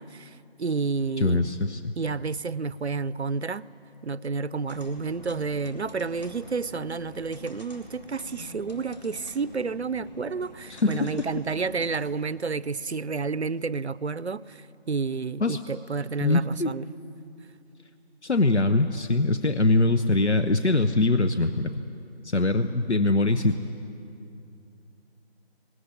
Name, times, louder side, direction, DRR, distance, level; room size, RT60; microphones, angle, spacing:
voice 1, 0.0-1.5 2.0-3.7 4.0-16.9, right 4 dB, 75° right, 19 dB, 0.7 m, -30 dB
voice 2, 1.2-1.9 10.7-11.3 15.4-15.6 16.2-16.7 18.2-21.7 22.2-23.6, left 2 dB, 85° left, 9 dB, 1.0 m, -23 dB
sound 1, 4.7-12.0, left 1 dB, 40° left, 2.1 m, -46 dB
19.0 x 17.5 x 10.0 m, 2.7 s
figure-of-eight pair, 170°, 33 cm